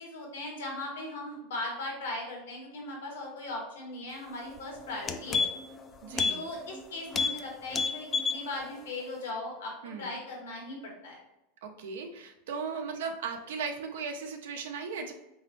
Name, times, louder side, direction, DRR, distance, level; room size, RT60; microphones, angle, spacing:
voice 1, 0.0-5.5 6.3-11.2, left 2 dB, 85° left, -1 dB, 1.6 m, -38 dB
sound 1, 4.5-4.6 4.9-5.8 6.1-6.4 6.7-6.8 7.1-7.4 7.7-8.4 8.8-8.9, left 5 dB, 25° left, 0.4 m, -29 dB
voice 2, 6.0-6.5 9.8-10.2 11.6-15.1, right 5 dB, 85° right, 4 dB, 0.8 m, -37 dB
4.1 x 3.8 x 3.1 m, 0.91 s
supercardioid pair, 130°, 0 cm